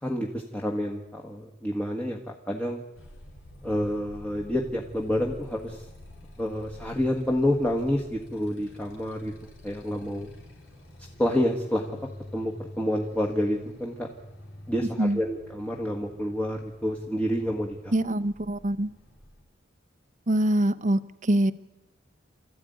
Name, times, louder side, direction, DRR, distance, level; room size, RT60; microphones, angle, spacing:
voice 1, 0.0-2.8 3.6-5.8 6.4-9.3 9.6-10.3 11.2-12.0 12.3-14.1 14.7-17.9, equal, 5° left, -1 dB, 1.6 m, -28 dB
Motorcycle, 2.9-19.4, left 1 dB, 85° left, 4.7 m, -48 dB
voice 2, 17.9-18.9 20.3-21.5, right 1 dB, 40° right, 13 dB, 0.8 m, -24 dB
29.0 x 14.0 x 9.3 m, 1.1 s
head